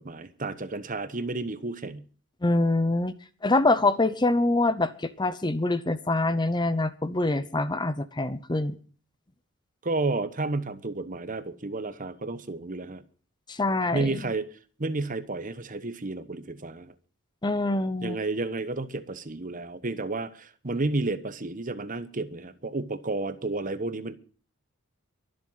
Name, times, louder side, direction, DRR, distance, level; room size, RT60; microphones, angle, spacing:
voice 1, 0.0-2.0 9.8-13.0 13.9-14.5 14.8-16.9 18.0-24.1, right 2 dB, 40° right, 1.1 m, -31 dB
voice 2, 2.4-3.1 3.4-8.8 13.5-14.1 17.4-18.2, left 2 dB, 20° left, 0.8 m, -25 dB
23.5 x 7.8 x 5.6 m
head